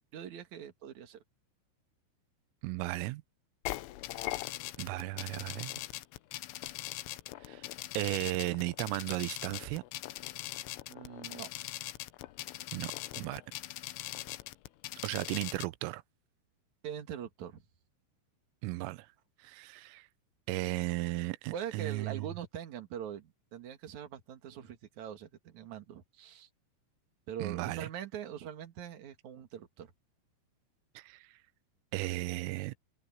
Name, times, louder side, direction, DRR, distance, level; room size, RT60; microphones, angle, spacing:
voice 1, 0.1-1.2 10.9-11.5 16.8-17.6 21.5-26.5 27.3-29.9, right 9 dB, 55° right, 2.2 m, -43 dB
voice 2, 2.6-3.2 4.8-5.7 7.4-7.6 7.9-9.8 12.7-13.4 15.0-16.0 18.6-19.1 19.4-20.1 20.5-22.3 27.4-27.9 31.0-31.3 31.9-32.7, right 19 dB, 85° right, 3.3 m, -35 dB
sound 1, 3.7-15.7, left 18 dB, 85° left, 3.2 m, -41 dB
omnidirectional pair, 5.9 m